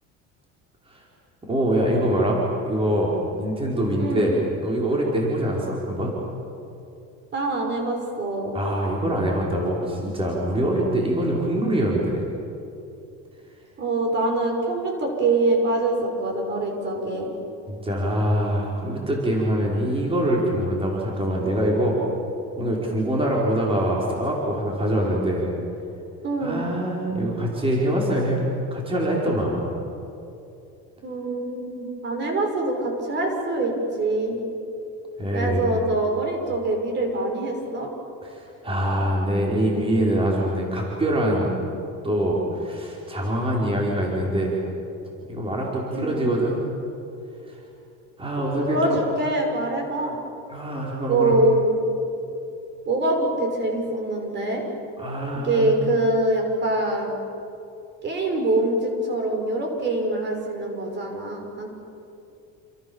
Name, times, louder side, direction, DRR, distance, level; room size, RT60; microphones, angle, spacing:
voice 1, 1.5-6.2 8.5-12.3 17.7-22.0 22.5-25.5 26.4-28.4 28.7-29.7 35.2-35.7 38.2-41.5 42.0-44.6 45.3-46.6 47.5-47.6 48.2-49.0 50.5-51.3 55.0-55.7, right 1 dB, 15° right, -3 dB, 5.3 m, -24 dB
voice 2, 4.0-4.4 7.3-8.5 13.8-17.3 26.2-26.6 31.0-34.4 35.3-37.9 45.9-46.4 48.6-50.2 51.1-51.8 52.9-54.6 55.3-57.1 58.0-61.7, right 2 dB, 35° right, 3 dB, 5.9 m, -24 dB
29.5 x 27.5 x 7.4 m, 2.7 s
cardioid pair, 145°, 32 cm